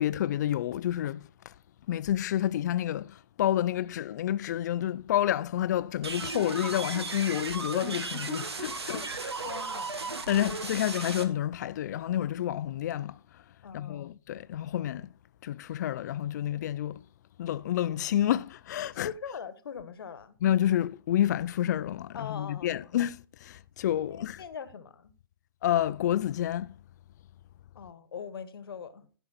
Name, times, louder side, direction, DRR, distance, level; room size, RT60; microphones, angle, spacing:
voice 1, 0.0-1.5 1.9-9.0 10.3-13.4 13.7-15.1 15.4-17.0 17.4-19.1 20.4-24.4 25.6-26.8, left 11 dB, 45° left, 0.5 m, -29 dB
sound 1, 6.0-11.2, right 3 dB, 85° right, 1.5 m, -35 dB
voice 2, 8.9-10.2 13.6-14.1 19.0-20.3 22.1-22.8 24.1-25.1 27.7-29.1, left 7 dB, 65° left, 1.2 m, -42 dB
14.0 x 5.5 x 4.2 m
hypercardioid pair, 140°, 13 cm